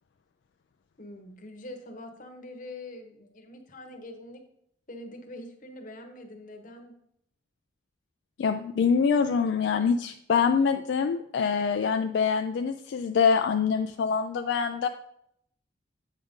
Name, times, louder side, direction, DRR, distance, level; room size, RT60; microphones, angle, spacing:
voice 1, 1.0-4.4 4.9-6.9, left 1 dB, 45° left, 4 dB, 1.0 m, -44 dB
voice 2, 8.4-14.9, left 6 dB, 70° left, 6 dB, 0.3 m, -25 dB
8.2 x 5.1 x 3.6 m, 0.74 s
head